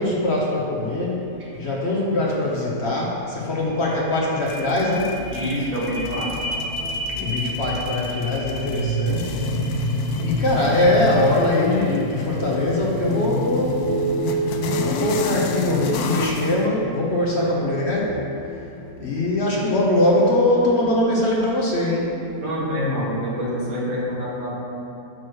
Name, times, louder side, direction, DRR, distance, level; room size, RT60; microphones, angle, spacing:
voice 1, 0.0-1.2 1.6-5.1 7.1-9.4 10.2-14.0 14.8-18.1 19.0-22.1, left 1 dB, 50° left, -4 dB, 1.2 m, -22 dB
sound 1, 3.7-19.6 20.1-20.2, right 3 dB, 65° left, 2.5 m, -31 dB
sound 2, 4.5-16.6, left 4 dB, 85° left, 1.1 m, -29 dB
voice 2, 5.3-6.3 22.4-24.5, equal, 65° right, -6 dB, 1.9 m, -26 dB
9.0 x 3.1 x 6.1 m, 2.6 s
omnidirectional pair, 1.6 m